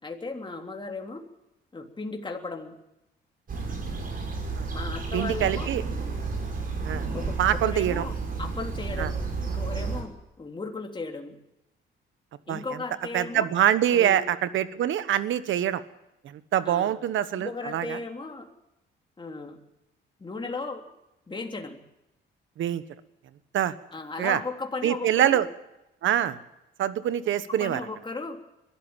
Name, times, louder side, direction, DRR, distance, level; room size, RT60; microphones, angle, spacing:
voice 1, 0.0-1.2 1.7-2.7 4.7-5.7 7.1-11.4 12.5-13.5 13.9-14.2 16.6-17.0 17.3-18.5 19.2-19.6 20.2-20.9 21.3-21.8 23.9-25.4 27.2-28.4, left 3 dB, 25° left, 2 dB, 3.4 m, -36 dB
sound 1, 3.5-10.0, right 4 dB, 45° right, 6.3 m, -31 dB
voice 2, 5.1-5.8 6.8-7.1 7.4-8.0 9.0-9.1 12.5-12.6 13.1-15.8 16.2-18.0 22.6-22.8 23.5-23.7 24.2-24.4 24.8-25.5 26.0-26.4 26.8-27.8, right 11 dB, 75° right, 13 dB, 1.4 m, -25 dB
22.5 x 13.0 x 9.0 m, 0.90 s
cardioid pair, 90°, 20 cm